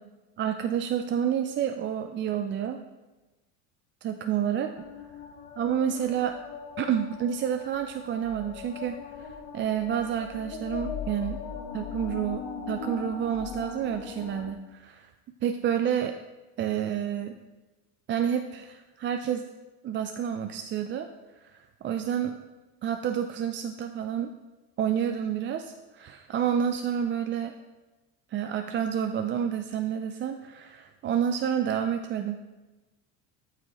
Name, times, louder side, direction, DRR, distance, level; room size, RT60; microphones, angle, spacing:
voice 1, 0.4-2.8 4.0-4.7 5.6-6.3 6.8-11.4 11.7-15.0 15.4-16.1 16.6-17.4 18.1-19.5 19.8-21.1 21.4-22.3 22.8-24.3 24.8-27.5 28.3-32.4, right 9 dB, 30° right, 6 dB, 0.4 m, -29 dB
sound 1, 4.8-14.5, left 6 dB, 75° left, 1.1 m, -40 dB
13.0 x 4.8 x 3.0 m, 1.1 s
supercardioid pair, 100°, 36 cm